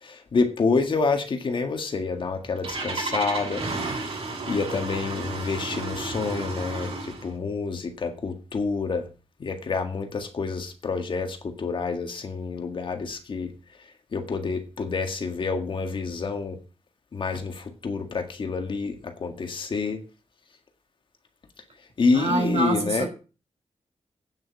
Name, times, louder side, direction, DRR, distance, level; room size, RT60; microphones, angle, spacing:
voice 1, 0.0-3.6 4.5-9.1 9.4-13.5 14.1-16.6 17.1-20.0 22.0-23.1, left 4 dB, 50° left, 1.9 m, -28 dB
Engine starting, 2.1-7.3, right 3 dB, 65° right, 6.2 m, -32 dB
voice 2, 22.1-23.1, right 3 dB, 90° right, 5.4 m, -25 dB
9.1 x 7.8 x 6.2 m
wide cardioid pair, 155°, 11 cm